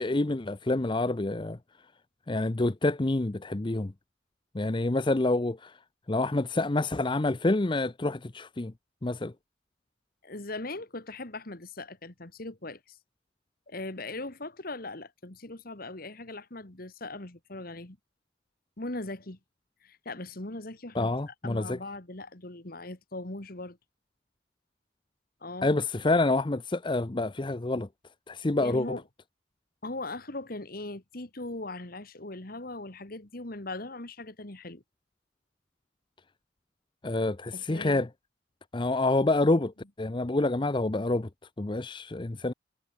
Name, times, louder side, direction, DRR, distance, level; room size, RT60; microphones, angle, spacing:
voice 1, 0.0-1.6 2.3-3.9 4.5-5.8 6.1-8.7 9.0-9.3 20.9-21.8 25.6-27.9 28.3-29.0 37.0-38.1 38.7-41.3 41.6-42.5, left 2 dB, 25° left, 0.6 m, -27 dB
voice 2, 10.2-13.0 13.7-18.0 18.8-19.4 19.8-23.8 25.4-25.7 28.6-29.0 29.8-34.8 37.5-38.0, left 2 dB, 50° left, 2.1 m, -39 dB
head